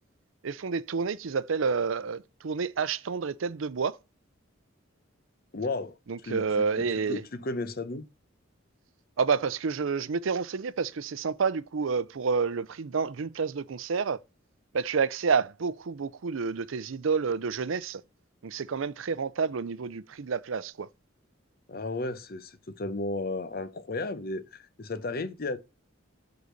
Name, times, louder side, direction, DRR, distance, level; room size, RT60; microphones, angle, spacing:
voice 1, 0.4-4.0 6.1-7.2 9.2-14.2 14.7-18.0 18.4-20.9, right 5 dB, 75° right, 0.5 m, -29 dB
voice 2, 5.5-6.0 6.2-6.6 7.1-8.1 21.7-25.6, left 2 dB, 50° left, 0.8 m, -34 dB
8.2 x 4.0 x 6.4 m
head